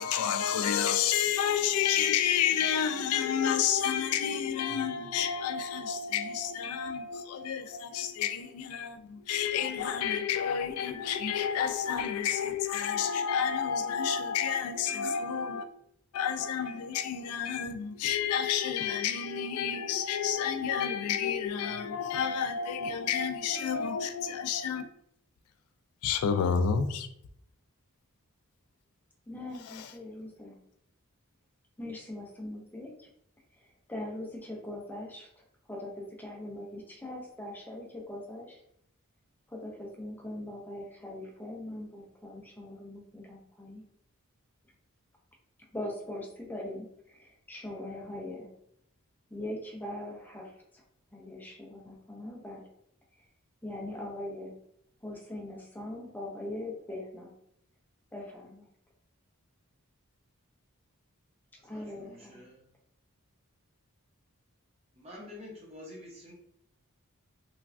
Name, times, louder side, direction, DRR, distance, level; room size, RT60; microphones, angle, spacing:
voice 1, 0.0-15.7 16.1-24.8 26.0-27.1 29.7-29.9, left 8 dB, 85° left, 0.3 m, -30 dB
voice 2, 29.3-30.6 31.8-33.1 33.6-38.6 39.5-43.8 45.7-48.5 49.3-50.8 51.1-52.6 53.6-54.5 55.0-57.3 58.1-58.7 61.6-62.4, left 1 dB, 10° left, 0.4 m, -41 dB
voice 3, 61.6-62.6 64.9-66.3, left 1 dB, 30° right, 0.8 m, -48 dB
3.1 x 2.3 x 2.4 m
head